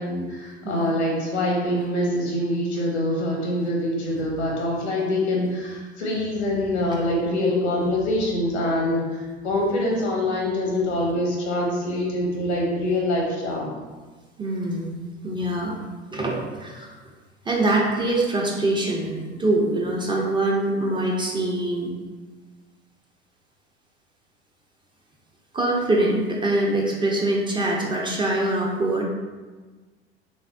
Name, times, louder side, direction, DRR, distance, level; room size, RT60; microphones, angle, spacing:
voice 1, 0.0-13.7, left 1 dB, 80° left, -2 dB, 0.9 m, -25 dB
voice 2, 0.6-0.9 14.4-14.9 15.2-15.8 16.1-16.9 17.5-21.9 25.5-29.0, right 2 dB, 15° right, -2 dB, 0.4 m, -24 dB
3.2 x 2.4 x 2.4 m, 1.3 s
figure-of-eight pair, 70°, 33 cm